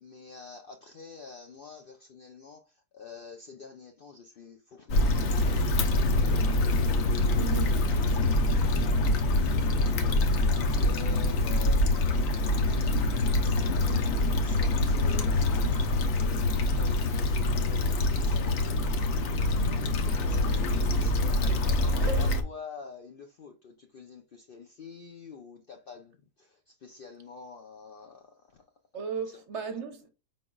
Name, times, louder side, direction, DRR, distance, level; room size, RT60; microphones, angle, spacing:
voice 1, 0.0-2.6 2.9-6.7 7.3-7.7 8.2-9.2 9.6-11.8 12.1-14.0 14.3-21.4 21.9-26.1 26.8-28.2, left 5 dB, 75° left, 0.5 m, -47 dB
Stream / Traffic noise roadway noise / Trickle dribble, 4.9-22.4, left 2 dB, 60° left, 1.1 m, -25 dB
voice 2, 7.3-7.8 20.1-20.4 21.5-21.6 22.0-22.4 28.9-30.1, right 5 dB, 50° right, 1.0 m, -36 dB
5.0 x 3.9 x 2.3 m
omnidirectional pair, 1.7 m